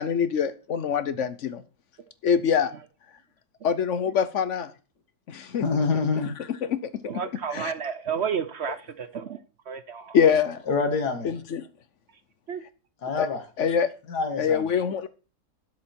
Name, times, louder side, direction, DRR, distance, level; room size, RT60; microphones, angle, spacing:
voice 1, 0.0-1.6 2.2-2.7 3.6-4.7 5.3-5.6 6.5-6.9 7.5-7.7 10.1-10.6 11.2-11.6 13.2-13.3 13.6-13.9 14.4-15.1, left 7 dB, 60° left, 14 dB, 0.9 m, -24 dB
voice 2, 5.6-6.4 10.7-11.3 13.0-13.4 14.1-14.7, left 4 dB, 75° left, 7 dB, 2.3 m, -26 dB
voice 3, 7.1-9.4 9.7-10.2 12.5-12.6, right 7 dB, 60° right, 12 dB, 0.7 m, -31 dB
10.5 x 7.9 x 4.4 m, 0.34 s
omnidirectional pair, 1.7 m